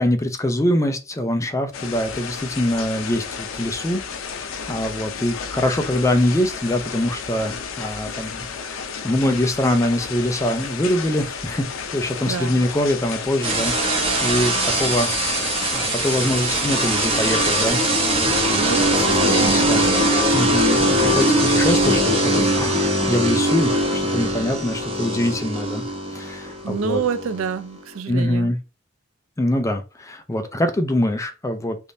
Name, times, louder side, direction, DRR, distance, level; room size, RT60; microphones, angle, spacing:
voice 1, 0.0-15.1 15.7-17.8 18.3-18.6 18.9-19.1 19.4-19.9 20.3-25.8 26.1-27.0 28.1-28.6 29.4-31.8, left 1 dB, 15° left, 0.4 m, -24 dB
sound 1, 1.7-17.9, left 6 dB, 80° left, 0.5 m, -32 dB
voice 2, 12.3-12.6 18.5-20.1 26.6-28.5, right 6 dB, 90° right, 0.4 m, -27 dB
sound 2, 13.4-28.0, right 1 dB, 30° right, 0.9 m, -21 dB
3.5 x 2.5 x 2.6 m
head